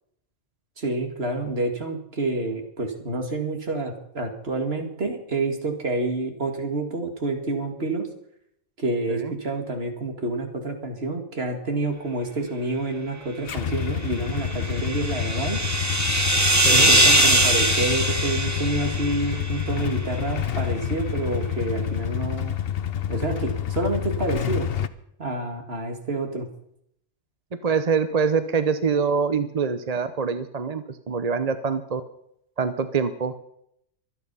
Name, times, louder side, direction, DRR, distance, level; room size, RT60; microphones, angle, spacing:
voice 1, 0.8-8.1 8.8-15.6 16.7-22.5 23.1-24.7 25.2-26.5, right 2 dB, 55° right, 4 dB, 2.4 m, -28 dB
Motorcycle / Engine starting / Idling, 13.5-24.9, left 9 dB, 55° left, 0.9 m, -28 dB
sound 1, 14.1-19.7, right 1 dB, 15° right, 1.2 m, -22 dB
voice 2, 27.6-32.0 32.6-33.3, right 5 dB, 35° right, 11 dB, 0.8 m, -24 dB
24.5 x 8.7 x 5.5 m, 0.74 s
omnidirectional pair, 1.2 m